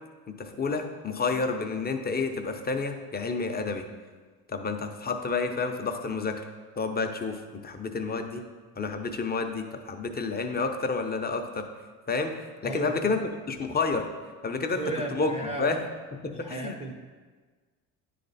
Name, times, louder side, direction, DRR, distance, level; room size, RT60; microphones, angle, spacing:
voice 1, 0.4-3.9 4.5-6.4 6.8-8.4 8.8-11.6 12.1-12.3 12.6-14.1 14.4-14.8 15.1-15.3 15.6-15.8 16.2-16.7, left 4 dB, 20° left, 5 dB, 0.7 m, -29 dB
voice 2, 12.6-13.2 14.7-15.8 16.3-16.9, right 2 dB, 15° right, 3 dB, 0.7 m, -35 dB
9.6 x 3.4 x 4.1 m, 1.4 s
supercardioid pair, 70°, 43 cm